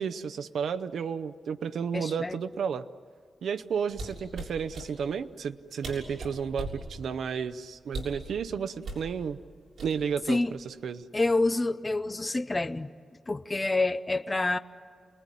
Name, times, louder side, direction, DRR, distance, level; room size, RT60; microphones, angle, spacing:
voice 1, 0.0-2.9 3.4-9.4 9.8-11.0, right 6 dB, 75° right, 10 dB, 0.6 m, -32 dB
voice 2, 1.9-2.4 10.3-10.5 11.1-12.9 13.3-14.6, left 2 dB, 15° left, 11 dB, 0.6 m, -27 dB
sound 1, 3.9-4.9 5.6-5.7 5.8-6.8 7.9-8.2 8.8-9.1 9.8-10.2 10.6-10.9, right 2 dB, 55° right, 6.8 m, -38 dB
29.5 x 20.0 x 9.9 m, 2.2 s
wide cardioid pair, 175°, 0 cm